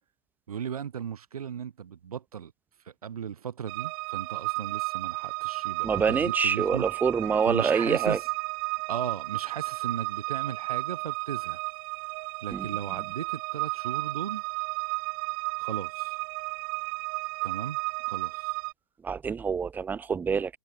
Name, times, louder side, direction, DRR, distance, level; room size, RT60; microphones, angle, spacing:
voice 1, 0.5-2.5 2.8-6.8 7.4-8.3 8.9-11.6 12.4-14.4 15.6-16.2 17.4-17.8 18.0-18.5, right 8 dB, 75° right, 4.8 m, -36 dB
sound 1, 3.7-18.7, right 33 dB, 35° right, 2.8 m, -33 dB
voice 2, 5.8-8.2 12.5-12.7 19.0-20.6, right 6 dB, 10° right, 0.8 m, -26 dB
hypercardioid pair, 140°, 19 cm